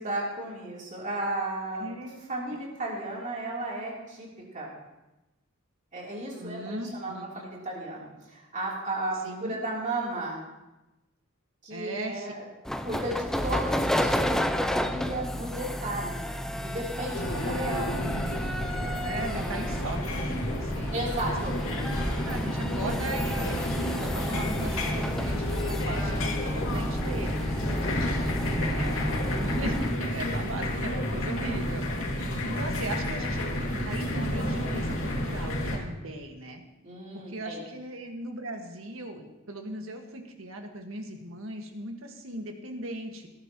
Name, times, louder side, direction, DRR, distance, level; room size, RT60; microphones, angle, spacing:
voice 1, 0.0-1.9 2.3-4.3 4.5-4.7 5.9-10.4 11.6-12.4 12.8-16.3 16.6-18.0 19.4-19.6 20.9-21.6 36.8-37.6, right 2 dB, 40° right, -4 dB, 3.4 m, -34 dB
voice 2, 1.7-2.3 6.3-7.5 9.2-9.6 11.7-12.3 17.5-17.7 19.0-21.3 21.6-21.7 22.1-27.8 28.3-32.0 32.4-35.0 35.2-36.6 37.1-43.3, right 1 dB, 90° right, 3 dB, 1.7 m, -38 dB
sound 1, 12.7-30.0, equal, ahead, 0.5 m, -32 dB
sound 2, 17.1-35.8, left 1 dB, 80° left, 2.3 m, -31 dB
18.5 x 11.5 x 3.0 m, 1.0 s
head